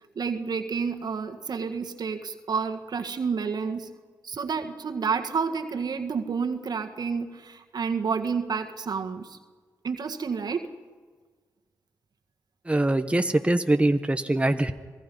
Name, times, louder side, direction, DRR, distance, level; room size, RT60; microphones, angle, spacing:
voice 1, 0.2-3.9 4.2-9.4 9.8-10.7, right 5 dB, 65° right, 6 dB, 1.8 m, -30 dB
voice 2, 12.6-14.7, right 1 dB, 15° right, 8 dB, 1.2 m, -23 dB
27.0 x 17.5 x 5.5 m, 1.4 s
supercardioid pair, 45°, 8 cm